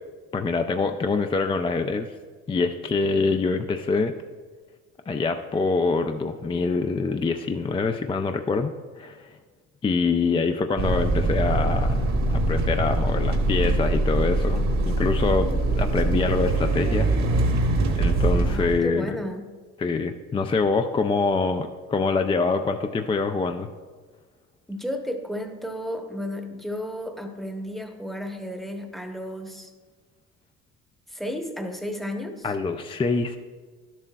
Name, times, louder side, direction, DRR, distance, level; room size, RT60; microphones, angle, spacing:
voice 1, 0.3-2.1 2.5-4.1 5.1-9.4 9.8-17.1 18.0-19.2 19.8-23.7 32.4-33.4, left 4 dB, 15° left, 6 dB, 0.3 m, -25 dB
sound 1, 10.8-18.8, right 2 dB, 60° right, 1.2 m, -23 dB
voice 2, 18.4-19.5 24.7-29.7 31.1-32.5, equal, ahead, 4 dB, 0.9 m, -33 dB
11.5 x 7.4 x 2.3 m, 1.5 s
cardioid pair, 90°, 31 cm